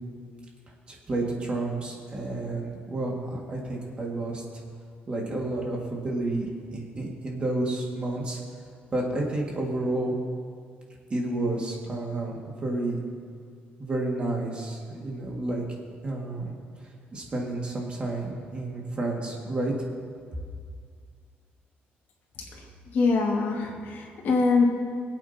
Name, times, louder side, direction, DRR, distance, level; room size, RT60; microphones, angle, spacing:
voice 1, 0.9-4.4 5.1-8.4 8.9-10.2 11.1-13.0 13.8-15.6 16.0-16.5 17.1-19.7, right 2 dB, 25° right, -1 dB, 2.1 m, -30 dB
voice 2, 22.4-24.7, left 4 dB, 60° left, -1 dB, 2.1 m, -24 dB
23.5 x 8.7 x 2.9 m, 2.1 s
cardioid pair, 150°, 4 cm